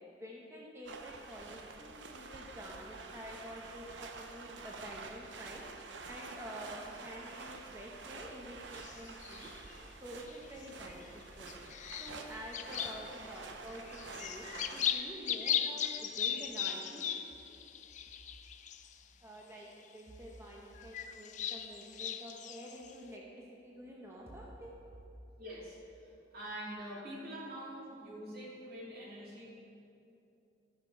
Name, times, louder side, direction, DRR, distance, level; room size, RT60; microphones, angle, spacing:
voice 1, 0.2-5.6 6.1-9.5 10.0-11.5 12.0-13.8 14.2-17.0 19.2-24.7, equal, 15° right, -4 dB, 0.8 m, -48 dB
sound 1, 0.9-14.9, right 4 dB, 90° right, 0.7 m, -48 dB
sound 2, 8.7-9.7 10.3-11.0 11.5-13.4 13.7-18.9 19.6-19.7 20.8-23.0, left 9 dB, 45° left, 0.4 m, -38 dB
voice 2, 25.4-25.8 26.3-29.4, right 1 dB, 55° right, -5 dB, 2.3 m, -44 dB
12.0 x 6.6 x 4.5 m, 2.7 s
head